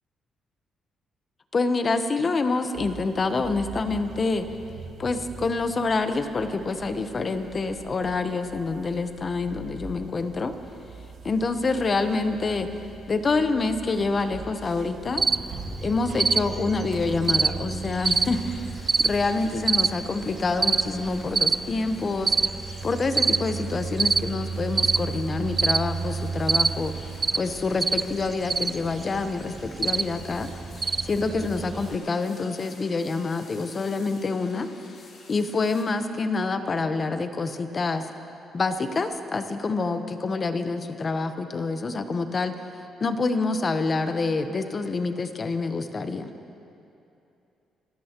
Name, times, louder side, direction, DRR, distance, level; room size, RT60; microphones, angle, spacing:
voice 1, 1.5-4.5 5.0-10.5 11.2-15.2 15.8-18.7 19.0-22.5 22.8-26.9 27.3-30.5 31.0-34.7 35.3-38.1 38.5-46.3, left 3 dB, 40° left, 8 dB, 1.0 m, -27 dB
sound 1, 2.7-19.2, right 4 dB, 75° right, 1.5 m, -43 dB
Cricket, 15.2-32.0, right 4 dB, 30° right, 0.4 m, -27 dB
sound 2, 18.1-35.8, left 3 dB, 60° left, 2.6 m, -50 dB
26.0 x 15.5 x 3.0 m, 2.7 s
cardioid pair, 90°, 0 cm